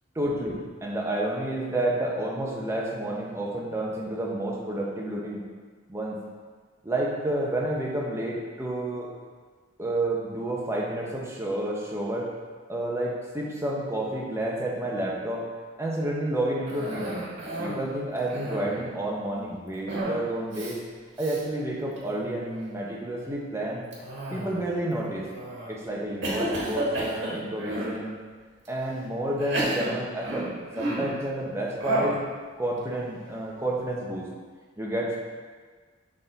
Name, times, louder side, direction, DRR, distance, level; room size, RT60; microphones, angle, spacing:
voice 1, 0.1-5.4 5.9-6.2 6.8-9.1 9.8-12.3 12.7-15.5 15.8-17.3 17.6-20.8 21.2-23.8 24.3-25.3 25.7-28.1 28.7-30.5 30.8-32.2 32.6-34.3 34.8-35.2, right 1 dB, 15° right, -3 dB, 0.9 m, -30 dB
Cough, 16.7-17.9 18.2-18.8 19.9-20.2 20.5-20.7 21.2-21.4 22.0-22.4 23.9-24.7 25.3-25.7 26.2-28.0 28.6-28.7 29.4-31.2 31.8-32.2, right 1 dB, 70° right, 1.5 m, -31 dB
6.5 x 3.7 x 4.0 m, 1.5 s
head